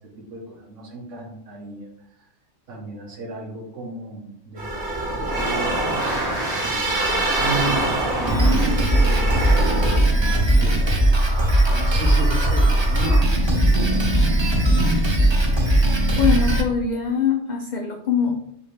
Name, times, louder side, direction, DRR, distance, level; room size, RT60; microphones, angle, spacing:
voice 1, 0.2-1.9 2.7-4.8 5.1-5.8 6.4-7.0 7.4-9.6 10.0-14.2, right 2 dB, 75° right, 1 dB, 1.3 m, -33 dB
sound 1, 4.6-10.0, right 1 dB, 50° right, 1.3 m, -24 dB
Drum kit, 8.3-16.6, right 1 dB, 30° right, 0.5 m, -18 dB
voice 2, 16.2-18.4, left 6 dB, 65° left, 3 dB, 0.4 m, -22 dB
4.2 x 3.5 x 3.3 m, 0.72 s
omnidirectional pair, 1.3 m